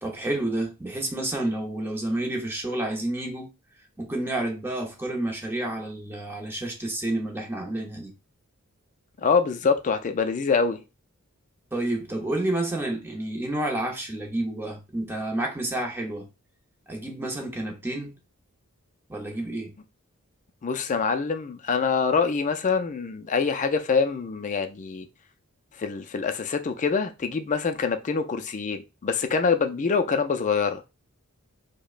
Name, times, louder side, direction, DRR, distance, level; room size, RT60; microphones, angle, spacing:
voice 1, 0.0-3.5 4.0-8.1 11.7-16.3 16.9-18.1 19.1-19.8, right 1 dB, 10° right, 0.8 m, -30 dB
voice 2, 9.2-10.8 20.6-25.1 25.8-30.8, left 5 dB, 35° left, 0.4 m, -25 dB
4.8 x 2.1 x 2.4 m
head